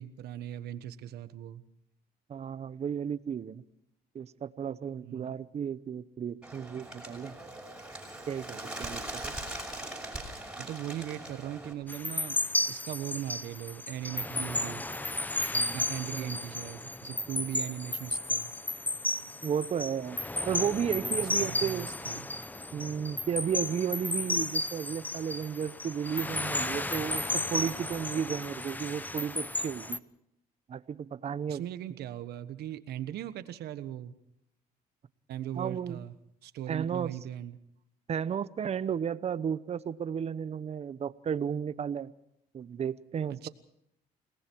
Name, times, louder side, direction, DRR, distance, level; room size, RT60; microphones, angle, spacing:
voice 1, 0.0-1.6 5.0-5.4 10.6-12.4 12.7-14.8 15.7-18.5 21.2-22.3 31.5-34.1 35.3-36.1 36.4-37.6 43.3-43.5, right 11 dB, 70° right, 12 dB, 1.3 m, -39 dB
voice 2, 2.3-3.6 4.1-7.4 8.3-9.3 15.5-15.9 16.1-16.3 19.4-21.9 22.7-30.0 30.7-31.6 35.5-36.0 36.7-37.1 38.1-42.1 42.5-43.5, right 8 dB, 40° right, 15 dB, 0.9 m, -33 dB
Bird, 6.4-11.7, right 1 dB, 5° right, 6.0 m, -41 dB
sound 1, 11.9-30.0, left 2 dB, 10° left, 0.8 m, -33 dB
29.5 x 19.0 x 4.7 m, 0.77 s
cardioid pair, 110°, 17 cm